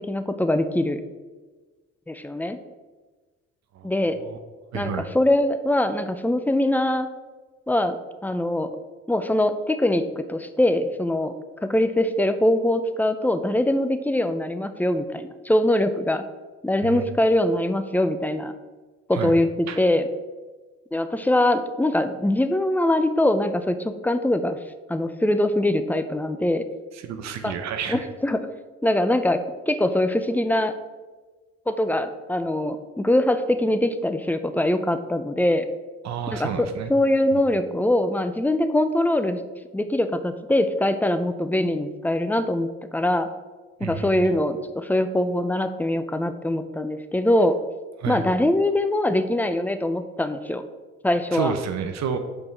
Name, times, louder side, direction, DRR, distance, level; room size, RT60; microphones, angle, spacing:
voice 1, 0.1-1.0 2.1-2.6 3.8-4.2 4.7-7.1 7.7-8.7 9.1-11.3 11.6-16.2 16.6-18.5 19.1-20.1 20.9-24.6 24.9-26.7 27.4-27.6 27.9-28.4 28.8-30.7 31.7-35.7 36.3-39.4 39.7-43.3 43.8-47.6 48.1-50.6 51.0-51.5, left 1 dB, 5° left, 10 dB, 0.5 m, -23 dB
voice 2, 3.7-4.4 4.7-5.1 16.8-17.0 19.1-19.4 19.7-19.8 26.9-28.1 36.0-36.9 37.3-37.4 43.8-44.3 48.0-48.2 51.3-52.2, right 7 dB, 60° right, 7 dB, 0.8 m, -30 dB
5.3 x 4.8 x 5.7 m, 1.3 s
cardioid pair, 90°, 31 cm